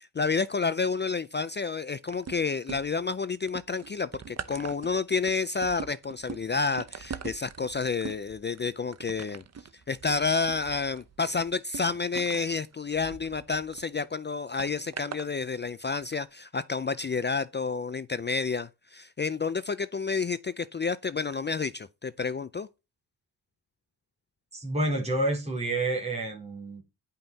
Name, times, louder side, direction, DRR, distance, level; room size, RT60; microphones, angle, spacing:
voice 1, 0.0-9.4 9.9-22.7, left 4 dB, 25° left, 0.4 m, -30 dB
sound 1, 2.1-3.1 3.5-13.8 14.6-15.3 16.0-16.1, right 6 dB, 40° right, 0.9 m, -42 dB
voice 2, 24.5-26.8, right 1 dB, 15° right, 3.9 m, -29 dB
10.5 x 5.7 x 4.0 m
cardioid pair, 95°, 42 cm